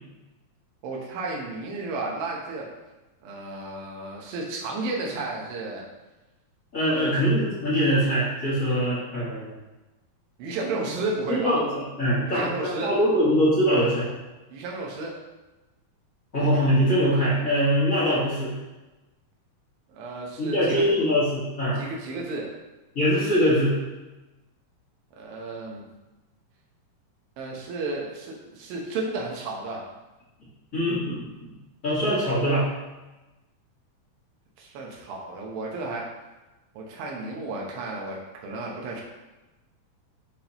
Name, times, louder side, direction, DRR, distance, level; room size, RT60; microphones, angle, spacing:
voice 1, 0.8-2.7 3.2-5.8 6.9-7.2 10.4-11.6 12.2-12.9 14.5-15.1 19.9-20.8 21.8-22.5 25.2-25.8 27.4-29.8 34.6-36.1 36.7-39.0, right 3 dB, 85° right, -2 dB, 2.9 m, -33 dB
voice 2, 6.7-9.5 11.3-11.7 12.0-14.1 16.3-18.5 20.4-21.8 22.9-23.7 30.7-31.5 31.8-32.6, equal, 45° left, -10 dB, 1.1 m, -23 dB
10.5 x 3.5 x 2.9 m, 1.1 s
omnidirectional pair, 4.1 m